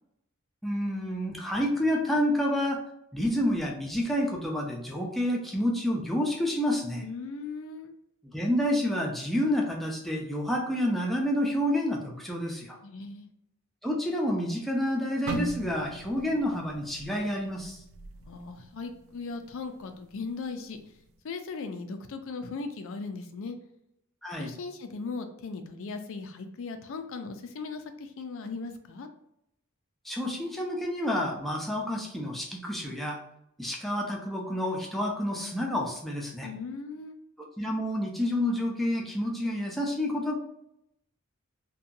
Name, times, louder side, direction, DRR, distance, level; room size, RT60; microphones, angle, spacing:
voice 1, 0.6-2.8 3.1-7.0 8.3-12.8 13.8-17.8 24.2-24.5 30.0-33.2 33.6-36.5 37.4-40.4, left 1 dB, ahead, -2 dB, 0.4 m, -29 dB
voice 2, 7.0-7.9 12.8-13.3 18.2-20.8 21.2-23.6 24.4-29.1 36.4-37.2, left 4 dB, 65° left, 7 dB, 0.4 m, -38 dB
sound 1, 15.3-19.3 19.7-19.9 20.6-20.9, right 3 dB, 65° right, 0.3 m, -40 dB
2.7 x 2.2 x 2.5 m, 0.79 s
head